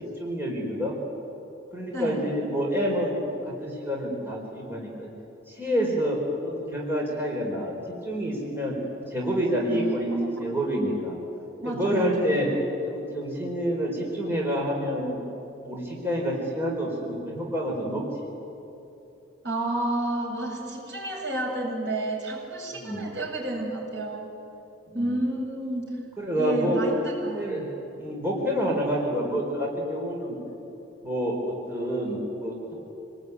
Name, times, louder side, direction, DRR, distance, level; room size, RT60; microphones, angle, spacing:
voice 1, 0.2-1.0 1.7-5.1 5.5-8.7 9.1-10.1 10.4-11.2 11.6-12.5 12.9-15.2 15.6-18.0 22.8-23.1 24.9-25.1 26.2-26.8 27.3-27.7 27.9-30.4 31.0-32.7, equal, 10° right, -3 dB, 4.6 m, -28 dB
voice 2, 1.9-2.2 9.7-10.6 11.6-12.4 19.4-24.3 24.9-26.0 26.4-27.4, right 1 dB, 65° right, -3 dB, 7.9 m, -30 dB
28.0 x 20.5 x 9.7 m, 2.8 s
head